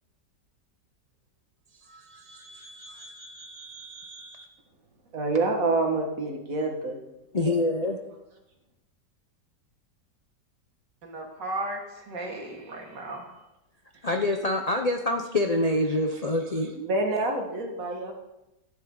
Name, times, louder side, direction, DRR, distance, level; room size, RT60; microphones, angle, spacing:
voice 1, 1.9-4.5 7.3-8.0 14.0-16.7, left 1 dB, 75° left, 4 dB, 0.3 m, -28 dB
voice 2, 5.1-7.0 16.8-18.1, right 2 dB, 50° right, 3 dB, 2.0 m, -27 dB
voice 3, 11.0-13.4, right 2 dB, 80° right, 1 dB, 2.6 m, -35 dB
14.5 x 10.5 x 3.8 m, 0.94 s
omnidirectional pair, 1.9 m